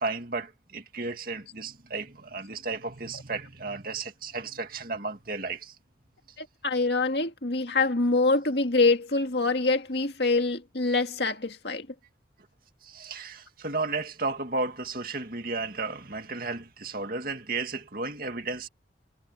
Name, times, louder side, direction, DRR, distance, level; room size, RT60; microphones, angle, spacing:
voice 1, 0.0-5.7 12.8-18.7, right 3 dB, 50° right, 2.3 m, -33 dB
voice 2, 6.4-11.9, left 3 dB, 60° left, 2.1 m, -25 dB
head